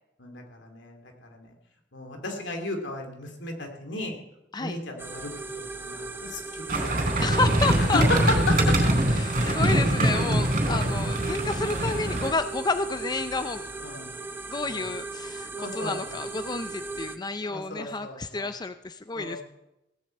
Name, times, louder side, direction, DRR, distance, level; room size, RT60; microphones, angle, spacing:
voice 1, 0.2-1.5 1.9-4.1 4.6-6.7 7.8-8.8 9.3-9.9 10.3-10.4 10.7-10.9 13.8-14.1 14.6-14.9 15.5-16.2 17.4-18.5 19.1-19.4, left 2 dB, 85° left, 3 dB, 2.5 m, -34 dB
sound 1, 5.0-17.2, right 3 dB, 10° right, 0.8 m, -37 dB
sound 2, 6.7-12.3, right 1 dB, 50° right, 4.2 m, -23 dB
voice 2, 7.2-8.0 9.2-13.6 14.5-19.4, left 3 dB, 25° left, 10 dB, 0.5 m, -30 dB
17.5 x 7.7 x 7.7 m, 0.90 s
head